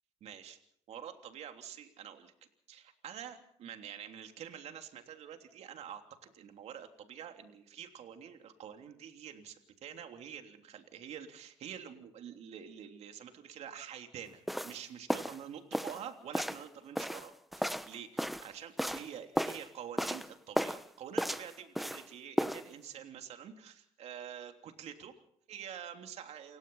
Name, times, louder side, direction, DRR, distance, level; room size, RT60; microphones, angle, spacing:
voice 1, 0.2-0.6 0.9-2.3 2.7-25.2 25.5-26.6, right 9 dB, 65° right, 5 dB, 3.2 m, -47 dB
sound 1, 14.5-14.8 15.1-15.4 15.7-16.0 16.3-16.6 17.0-18.5 18.8-19.1 19.4-19.7 20.0-20.3 20.6-20.8 21.2-22.0 22.4-22.6, equal, ahead, 1.0 m, -34 dB
29.0 x 17.0 x 5.6 m, 0.65 s
cardioid pair, 100°, 12 cm